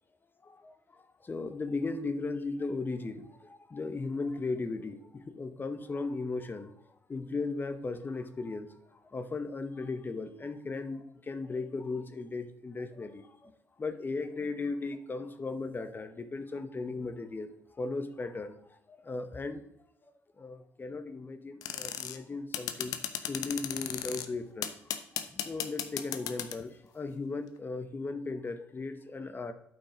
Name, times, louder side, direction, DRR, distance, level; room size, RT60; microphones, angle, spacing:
voice 1, 0.4-0.7 1.2-6.7 7.1-13.5 13.8-17.5 17.8-18.6 18.9-19.6 20.4-23.0 23.2-24.7 25.1-29.5, left 3 dB, 30° left, 9 dB, 1.0 m, -37 dB
sound 1, 21.6-22.2 22.5-24.3 24.6-26.6, left 11 dB, 75° left, 0.7 m, -35 dB
8.7 x 5.4 x 5.0 m, 0.77 s
supercardioid pair, 60°, 6 cm